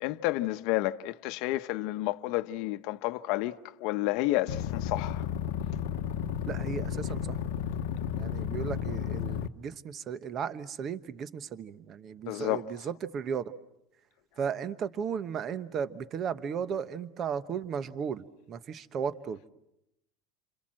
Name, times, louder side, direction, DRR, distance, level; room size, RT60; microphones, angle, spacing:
voice 1, 0.0-5.3 12.3-12.6, left 17 dB, 55° left, 1.0 m, -30 dB
sound 1, 4.5-9.5, left 9 dB, 80° left, 1.0 m, -33 dB
voice 2, 6.5-7.4 8.1-13.4 14.4-19.5, right 7 dB, 30° right, 1.0 m, -35 dB
29.5 x 26.5 x 7.6 m
supercardioid pair, 155°, 0 cm